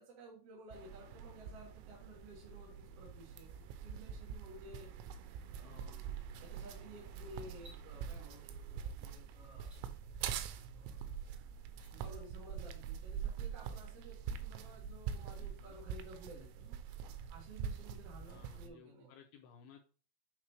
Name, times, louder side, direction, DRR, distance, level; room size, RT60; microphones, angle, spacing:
voice 1, 0.0-3.5 3.8-4.9 5.5-9.7 10.7-11.0 11.9-16.8 17.3-19.1, right 1 dB, 50° right, -3 dB, 2.0 m, -55 dB
sound 1, 0.7-18.7, right 7 dB, 90° right, 2.9 m, -45 dB
voice 2, 5.6-6.2 15.4-15.8 18.3-19.8, left 7 dB, 80° left, 4 dB, 2.3 m, -60 dB
sound 2, 7.5-7.8 9.6-9.8 11.6-11.9, equal, 30° right, 1.6 m, -60 dB
8.7 x 4.0 x 3.2 m, 0.38 s
omnidirectional pair, 5.0 m